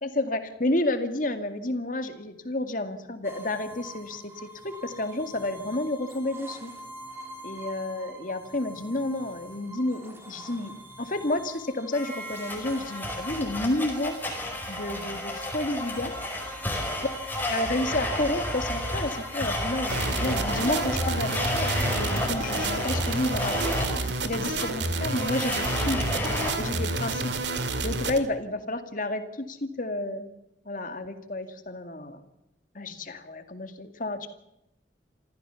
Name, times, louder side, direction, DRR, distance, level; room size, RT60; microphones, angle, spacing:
voice 1, 0.0-6.7 7.4-10.7 11.0-14.2 14.7-16.1 17.5-23.8 24.2-26.1 26.6-27.2 27.8-30.3 30.7-32.2 32.7-34.3, left 2 dB, 50° left, 8 dB, 2.2 m, -30 dB
sound 1, 3.2-21.8, right 1 dB, 15° right, 3.5 m, -45 dB
Domestic sounds home sounds, 11.9-26.5, left 1 dB, 10° left, 4.7 m, -31 dB
sound 2, 19.9-28.2, right 3 dB, 80° right, 2.3 m, -30 dB
27.5 x 14.5 x 7.0 m, 0.86 s
head